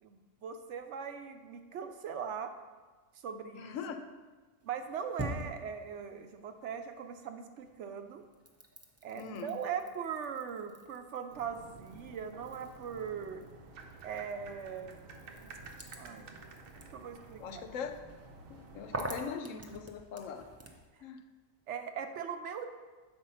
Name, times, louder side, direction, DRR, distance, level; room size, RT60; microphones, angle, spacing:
voice 1, 0.0-2.5 3.2-3.8 4.6-8.2 9.0-13.4 14.0-14.9 15.4-15.5 16.0-16.3 16.8-17.6 21.7-22.7, right 7 dB, 70° right, 7 dB, 0.9 m, -40 dB
voice 2, 3.5-4.0 9.2-9.6 17.4-18.0 18.5-20.5 21.0-21.2, left 6 dB, 80° left, 7 dB, 1.0 m, -41 dB
sound 1, 4.6-7.3 7.6-20.9, right 1 dB, 20° right, 0.4 m, -47 dB
sound 2, 11.3-19.0, right 3 dB, 85° right, 1.1 m, -52 dB
7.0 x 4.5 x 5.5 m, 1.3 s
omnidirectional pair, 1.3 m